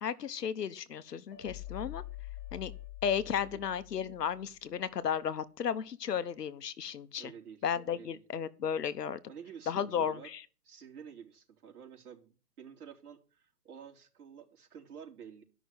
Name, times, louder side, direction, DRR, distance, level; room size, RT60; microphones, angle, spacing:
voice 1, 0.0-2.0 2.5-2.7 3.0-7.3 7.6-9.2 9.7-10.4, left 8 dB, 75° left, 1.2 m, -34 dB
sound 1, 1.3-4.5, left 14 dB, 50° left, 2.2 m, -45 dB
voice 2, 7.2-8.2 9.3-10.3 10.6-15.4, right 7 dB, 60° right, 3.9 m, -50 dB
12.5 x 6.2 x 8.0 m
hypercardioid pair, 145°, 49 cm